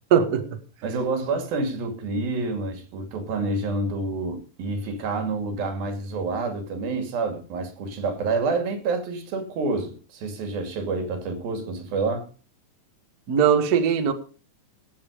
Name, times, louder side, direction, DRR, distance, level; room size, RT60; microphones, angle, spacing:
voice 1, 0.1-0.6 13.3-14.1, right 7 dB, 65° right, 0.9 m, -20 dB
voice 2, 0.8-12.3, right 3 dB, 80° right, 4.2 m, -28 dB
17.0 x 7.9 x 5.1 m
omnidirectional pair, 4.1 m